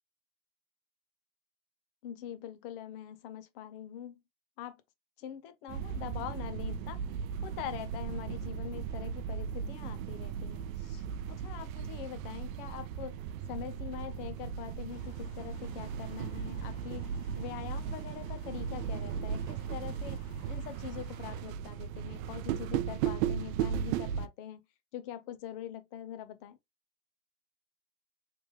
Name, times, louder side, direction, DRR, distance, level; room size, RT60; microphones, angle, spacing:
voice 1, 2.0-4.1 4.6-4.8 5.2-7.0 7.4-13.1 13.5-24.6 24.9-26.6, left 10 dB, 35° left, 0.5 m, -43 dB
sound 1, 5.7-24.3, right 8 dB, 60° right, 0.5 m, -36 dB
sound 2, 14.9-21.4, left 5 dB, 70° left, 1.9 m, -61 dB
3.4 x 3.1 x 3.2 m
supercardioid pair, 160°, 49 cm